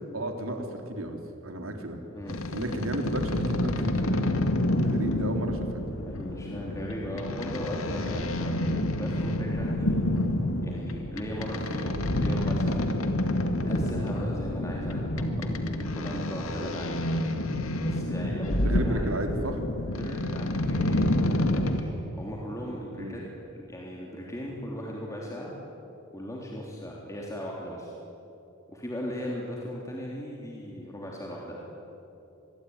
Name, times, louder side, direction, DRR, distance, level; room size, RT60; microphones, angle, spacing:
voice 1, 0.1-2.0 2.5-5.9 18.6-19.6 23.0-23.2, right 1 dB, 80° right, 4 dB, 3.5 m, -34 dB
sound 1, 2.3-21.8, left 1 dB, 80° left, 2.2 m, -28 dB
voice 2, 6.0-9.9 10.6-12.8 13.7-17.0 17.8-19.1 19.9-23.2 23.7-25.5 26.1-27.9 28.7-31.6, equal, 15° left, -3 dB, 3.5 m, -37 dB
26.0 x 21.5 x 9.7 m, 2.9 s
head